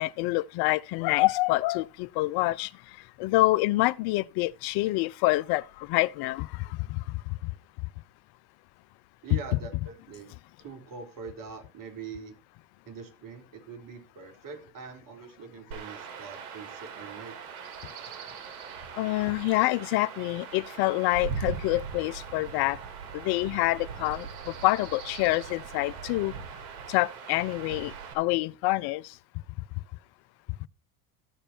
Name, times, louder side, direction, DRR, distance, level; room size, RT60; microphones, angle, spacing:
voice 1, 0.0-2.7 3.2-7.5 9.3-9.4 19.0-22.8 23.1-26.3 26.9-29.1 30.6-30.7, left 20 dB, 55° left, 0.7 m, -27 dB
voice 2, 9.2-10.3 10.6-12.3 12.9-17.3, right 5 dB, 45° right, 4.0 m, -43 dB
Chirp tweet / Wind / Stream, 15.7-28.1, right 6 dB, 60° right, 4.1 m, -40 dB
14.5 x 6.6 x 4.5 m
hypercardioid pair, 95°, 47 cm